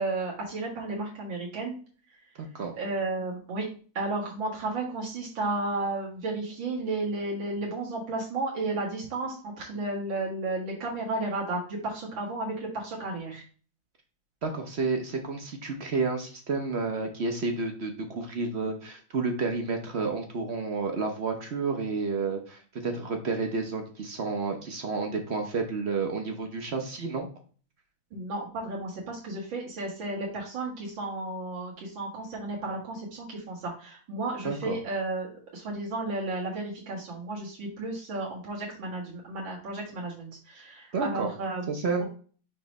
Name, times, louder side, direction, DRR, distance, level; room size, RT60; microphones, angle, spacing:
voice 1, 0.0-1.7 2.7-3.6 3.9-13.4 28.1-41.7, right 2 dB, 90° right, -4 dB, 2.4 m, -33 dB
voice 2, 2.4-2.7 14.4-27.3 34.4-34.8 40.9-41.3 41.7-42.0, right 4 dB, 50° right, 4 dB, 0.8 m, -30 dB
5.8 x 3.1 x 5.2 m, 0.41 s
omnidirectional pair, 2.0 m